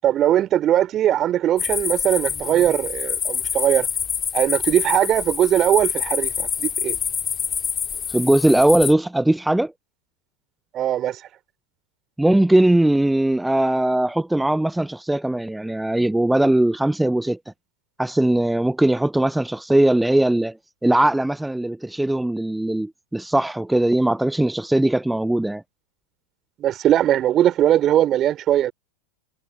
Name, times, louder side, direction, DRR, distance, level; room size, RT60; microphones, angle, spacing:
voice 1, 0.0-3.9 4.3-7.0 10.7-11.2 26.6-28.7, right 11 dB, 30° right, 4.4 m, -20 dB
sound 1, 1.6-8.9, left 7 dB, 20° left, 2.7 m, -26 dB
voice 2, 8.1-9.7 12.2-17.4 18.0-20.6 20.8-25.6, right 1 dB, 5° right, 0.8 m, -19 dB
figure-of-eight pair, 90°, 0 cm